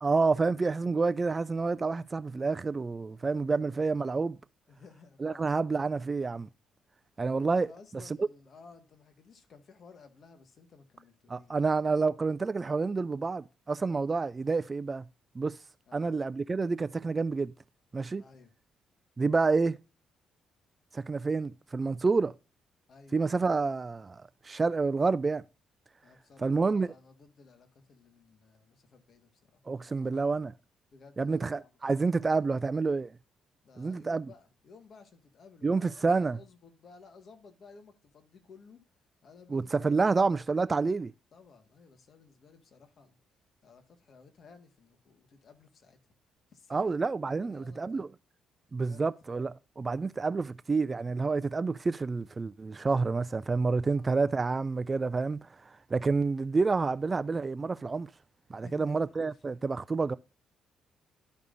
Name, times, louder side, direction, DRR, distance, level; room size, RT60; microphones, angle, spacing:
voice 1, 0.0-4.4 5.2-6.5 7.2-7.7 8.2-8.3 11.3-15.1 15.4-15.6 15.9-17.5 17.9-18.2 19.2-19.8 20.9-22.3 23.1-25.4 26.4-26.9 29.7-30.5 31.2-33.1 33.8-34.2 35.6-36.4 39.5-41.1 46.7-48.1 48.7-55.5 55.9-58.1 58.5-60.2, right 4 dB, 30° right, 0.3 m, -28 dB
voice 2, 3.0-3.7 4.7-5.6 7.6-11.5 15.9-16.2 18.2-18.5 22.9-23.2 26.0-30.4 30.9-32.7 33.6-38.8 39.2-40.3 41.3-43.2 43.6-46.0 46.5-47.0 47.4-48.1 48.8-49.3 53.8-54.1 58.5-59.4, left 4 dB, 55° left, 1.6 m, -56 dB
12.5 x 5.3 x 2.5 m
cardioid pair, 90°, 0 cm